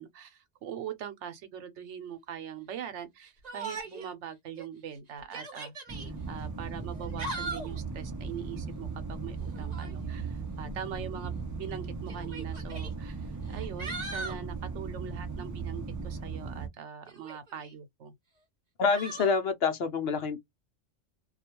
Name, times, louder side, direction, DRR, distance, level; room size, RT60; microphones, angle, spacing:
voice 1, 0.0-5.7 6.3-18.1, right 9 dB, 90° right, 1.0 m, -42 dB
Yell, 3.4-4.1 4.6-4.7 5.2-6.1 6.9-7.8 9.5-10.0 11.1-11.2 12.1-12.9 13.5-14.4 17.1-17.7 18.9-19.4, right 3 dB, 40° right, 0.8 m, -39 dB
sound 1, 5.9-16.7, right 4 dB, 25° right, 0.4 m, -37 dB
voice 2, 18.8-20.4, left 5 dB, 65° left, 0.8 m, -27 dB
2.4 x 2.2 x 2.8 m
omnidirectional pair, 1.2 m